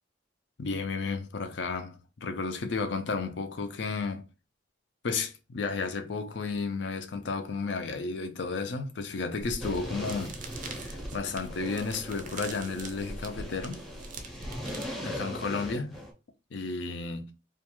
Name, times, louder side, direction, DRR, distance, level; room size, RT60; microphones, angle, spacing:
voice 1, 0.6-4.3 5.0-10.4 10.6-13.9 15.0-16.0 16.5-17.3, left 4 dB, 70° left, 0.5 m, -33 dB
sound 1, 9.4-14.9, right 2 dB, 40° right, 0.4 m, -43 dB
sound 2, 9.6-16.1, equal, ahead, 0.6 m, -40 dB
2.5 x 2.3 x 2.9 m
head